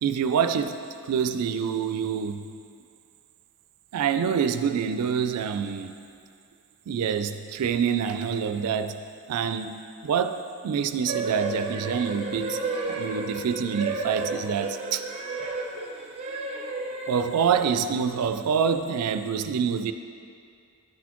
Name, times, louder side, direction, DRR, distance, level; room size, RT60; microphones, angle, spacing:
voice 1, 0.0-2.5 3.9-6.0 6.9-9.0 9.3-12.6 12.9-15.0 17.1-19.9, right 7 dB, 85° right, 9 dB, 0.3 m, -26 dB
sound 1, 11.1-17.6, right 3 dB, 30° right, 0.6 m, -32 dB
10.5 x 4.1 x 3.0 m, 2.4 s
head